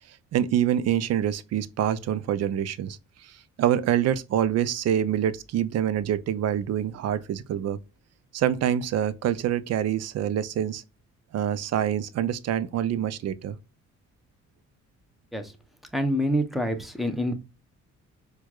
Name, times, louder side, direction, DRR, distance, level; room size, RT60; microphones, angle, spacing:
voice 1, 0.3-3.0 3.2-7.8 8.3-10.8 11.3-13.6, right 10 dB, 55° right, 0.5 m, -26 dB
voice 2, 15.9-17.3, equal, ahead, 0.7 m, -26 dB
4.5 x 2.3 x 2.3 m
cardioid pair, 90°, 30 cm